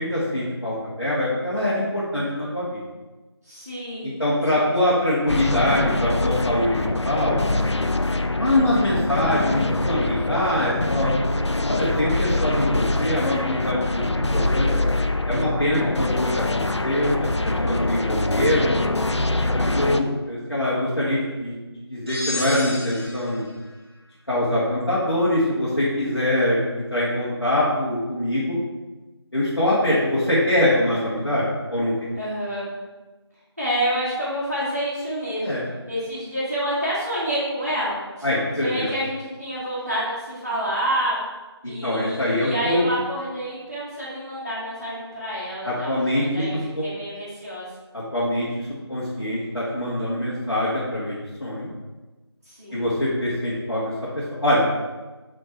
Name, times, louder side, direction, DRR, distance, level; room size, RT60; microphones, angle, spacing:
voice 1, 0.0-2.8 4.0-7.4 8.3-11.1 11.6-14.7 15.3-17.1 17.4-18.8 19.5-21.6 21.9-23.5 24.3-28.6 29.3-31.4 31.7-32.1 35.4-35.6 38.2-38.9 41.6-42.9 45.6-46.8 47.9-51.7 52.7-53.9 54.4-54.6, left 1 dB, 55° left, -10 dB, 2.2 m, -23 dB
voice 2, 3.4-4.2 4.5-5.0 32.1-32.7 33.6-35.5 35.9-38.3 38.6-41.2 41.6-47.7 52.4-52.9, right 1 dB, 25° right, -11 dB, 1.6 m, -28 dB
sound 1, 5.3-20.0, left 2 dB, 80° left, 0.6 m, -24 dB
sound 2, 22.1-23.4, left 1 dB, 65° right, 1.7 m, -32 dB
8.3 x 3.9 x 4.7 m, 1.2 s
figure-of-eight pair, 180°, 14 cm